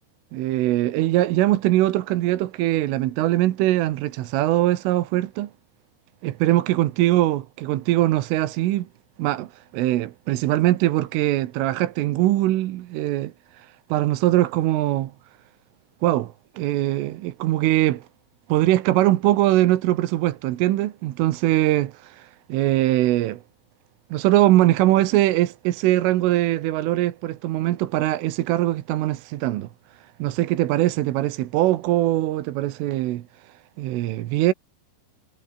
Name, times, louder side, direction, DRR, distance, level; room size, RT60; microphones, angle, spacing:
voice 1, 0.3-5.5 6.2-8.9 9.2-15.1 16.0-18.1 18.5-23.4 24.1-29.7 30.2-34.5, right 15 dB, 85° right, 3.9 m, -22 dB
omnidirectional pair, 5.6 m